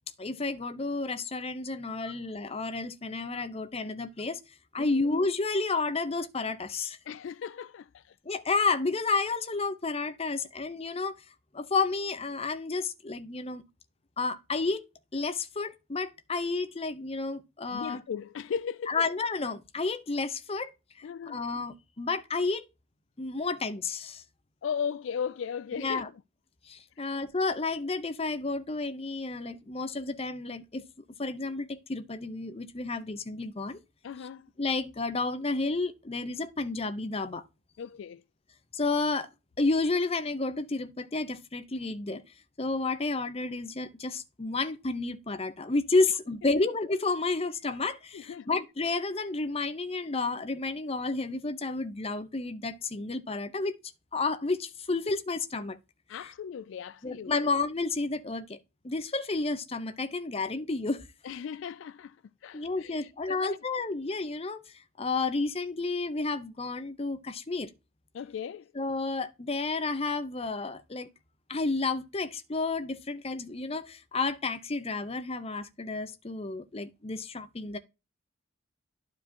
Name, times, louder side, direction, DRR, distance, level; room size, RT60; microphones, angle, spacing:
voice 1, 0.2-4.4 4.7-7.0 8.2-11.1 11.5-13.6 14.2-14.8 15.1-18.0 18.9-20.7 21.3-22.6 23.2-24.2 25.8-26.1 26.7-30.8 31.2-33.8 34.6-37.4 38.7-39.3 39.6-42.2 42.6-53.7 54.1-55.8 57.0-58.6 58.8-61.0 62.5-64.6 65.0-67.7 68.8-71.1 71.5-77.8, left 3 dB, 30° left, 0.8 m, -31 dB
voice 2, 7.1-8.2 17.7-19.0 21.0-21.4 24.6-26.1 27.0-27.1 34.0-34.5 37.8-38.2 48.1-48.5 56.1-57.4 61.2-62.2 62.4-63.6 68.1-68.7, left 7 dB, 65° left, 0.3 m, -37 dB
11.5 x 4.9 x 2.8 m
head